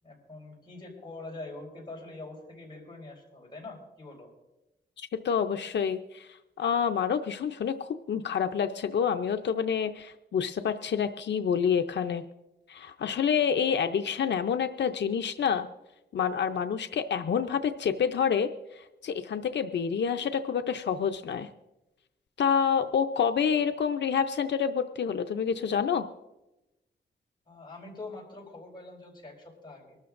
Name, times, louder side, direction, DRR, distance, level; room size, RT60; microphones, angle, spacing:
voice 1, 0.0-4.3 27.5-30.0, left 2 dB, 25° left, -2 dB, 4.9 m, -44 dB
voice 2, 5.0-6.3 6.6-12.2 12.7-15.7 16.1-18.5 18.8-21.5 22.4-26.1, left 7 dB, 90° left, 7 dB, 0.5 m, -28 dB
24.5 x 13.0 x 2.5 m, 0.98 s
wide cardioid pair, 145°, 18 cm